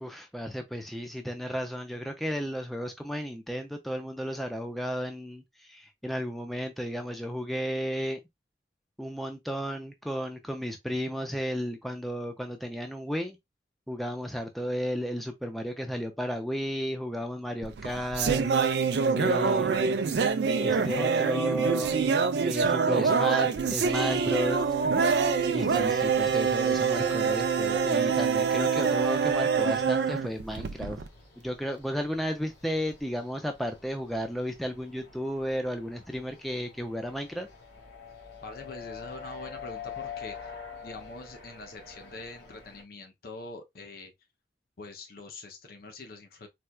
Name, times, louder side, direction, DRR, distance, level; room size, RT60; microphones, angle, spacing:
voice 1, 0.0-8.2 9.0-13.4 13.9-18.5 19.2-20.1 20.6-22.0 22.4-24.6 25.5-31.0 31.4-37.5, equal, ahead, 0.4 m, -33 dB
sound 1, 17.6-31.1, right 5 dB, 70° right, 0.4 m, -25 dB
sound 2, 23.6-42.8, left 6 dB, 70° left, 1.3 m, -48 dB
voice 2, 38.4-40.5 40.8-44.1 44.8-46.5, left 2 dB, 55° left, 0.6 m, -44 dB
4.2 x 2.2 x 2.3 m
head